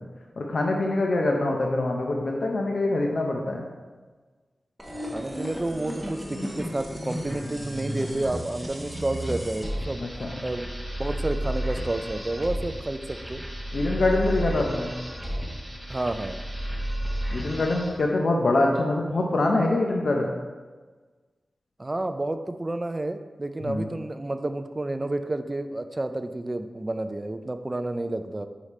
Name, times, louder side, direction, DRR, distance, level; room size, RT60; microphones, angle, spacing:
voice 1, 0.4-3.7 10.0-10.4 13.7-15.0 17.3-20.3 23.6-23.9, left 2 dB, 60° left, 0 dB, 0.6 m, -24 dB
sound 1, 4.8-18.0, equal, ahead, 1.0 m, -33 dB
voice 2, 5.0-10.0 10.4-13.4 15.9-16.4 21.8-28.5, right 2 dB, 25° right, 8 dB, 0.3 m, -30 dB
5.0 x 4.9 x 4.2 m, 1.4 s
wide cardioid pair, 120°, 0 cm